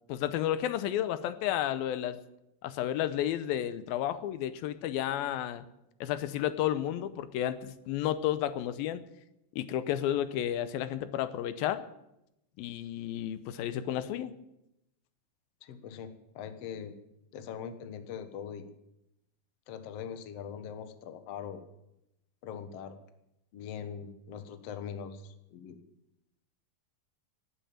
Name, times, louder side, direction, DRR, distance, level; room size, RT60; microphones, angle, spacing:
voice 1, 0.1-2.2 2.6-5.6 6.0-9.0 9.6-11.9 12.6-14.3, left 11 dB, 85° left, 13 dB, 2.6 m, -32 dB
voice 2, 15.6-16.9 17.3-18.7 19.7-21.6 22.4-23.0 23.5-25.8, left 7 dB, 60° left, 9 dB, 1.8 m, -42 dB
18.0 x 9.1 x 8.8 m, 0.85 s
omnidirectional pair, 4.2 m